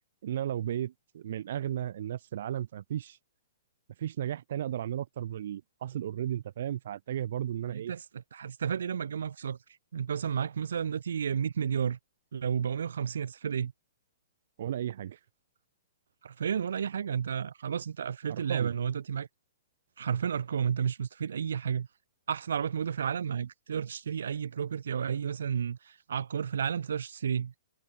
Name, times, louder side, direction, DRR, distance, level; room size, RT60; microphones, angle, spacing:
voice 1, 0.2-3.2 4.0-7.9 14.6-15.2 18.3-18.7, right 11 dB, 50° right, 1.7 m, -34 dB
voice 2, 7.7-8.0 8.3-9.6 9.9-12.0 12.3-13.7 16.2-19.3 20.0-21.9 22.3-27.5, right 7 dB, 80° right, 1.7 m, -32 dB
hypercardioid pair, 175°, 0 cm